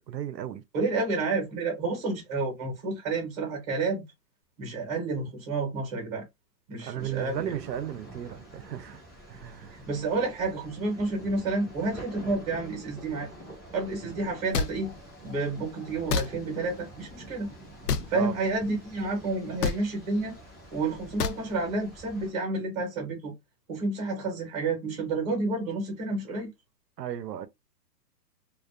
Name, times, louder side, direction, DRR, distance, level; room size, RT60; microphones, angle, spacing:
voice 1, 0.1-0.6 6.8-9.0 9.3-9.8 18.1-18.3 27.0-27.5, right 10 dB, 75° right, 0.6 m, -35 dB
voice 2, 0.7-4.0 4.6-6.2 6.7-7.6 9.7-13.3 13.7-14.9 15.2-17.5 18.1-20.3 20.7-23.3 23.7-26.5, right 3 dB, 25° right, 0.8 m, -30 dB
sound 1, 7.0-22.3, right 1 dB, ahead, 0.3 m, -46 dB
sound 2, 14.5-14.7 16.1-16.3 17.9-18.1 19.6-19.8 21.2-21.4, left 6 dB, 70° left, 0.6 m, -26 dB
2.4 x 2.3 x 2.3 m
hypercardioid pair, 160°, 50 cm